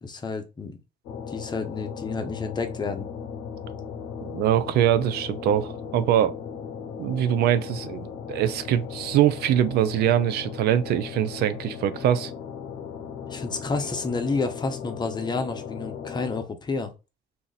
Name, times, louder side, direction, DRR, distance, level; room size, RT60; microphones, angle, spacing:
voice 1, 0.0-0.8 1.3-3.1 13.3-16.9, left 4 dB, 25° left, 0.7 m, -30 dB
sound 1, 1.0-16.4, left 7 dB, 85° left, 0.8 m, -37 dB
voice 2, 4.3-6.3 7.0-12.3, right 10 dB, 70° right, 0.4 m, -23 dB
2.8 x 2.4 x 4.0 m
cardioid pair, 110°, 17 cm